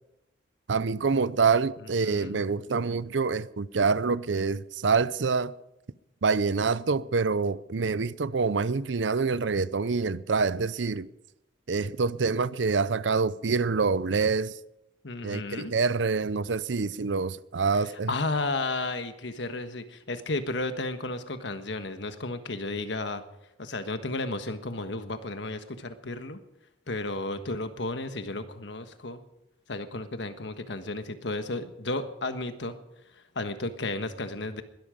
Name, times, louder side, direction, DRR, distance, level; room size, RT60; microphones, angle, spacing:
voice 1, 0.7-5.5 6.2-11.1 11.7-14.5 15.2-18.1, right 4 dB, 80° right, 0.6 m, -26 dB
voice 2, 2.0-2.4 15.0-15.7 18.1-23.2 23.6-26.4 26.9-29.2 29.7-32.7 33.3-34.6, left 2 dB, 75° left, 1.4 m, -33 dB
21.5 x 13.0 x 5.1 m
head